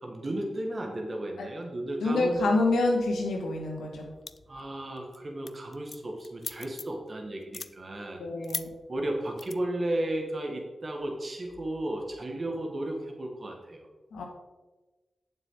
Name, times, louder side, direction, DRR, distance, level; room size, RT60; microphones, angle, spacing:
voice 1, 0.0-2.4 4.5-8.2 8.9-13.9, right 1 dB, 50° right, 1 dB, 1.9 m, -34 dB
voice 2, 2.0-4.1 8.2-8.7 14.1-14.2, left 2 dB, 90° left, 1 dB, 1.9 m, -27 dB
sound 1, 4.3-4.6 5.0-5.2 5.5-7.0 7.4-7.7 8.4-8.7 9.4-9.5, left 4 dB, 55° left, 0.5 m, -37 dB
9.0 x 7.3 x 4.0 m, 1.2 s
cardioid pair, 40°, 0 cm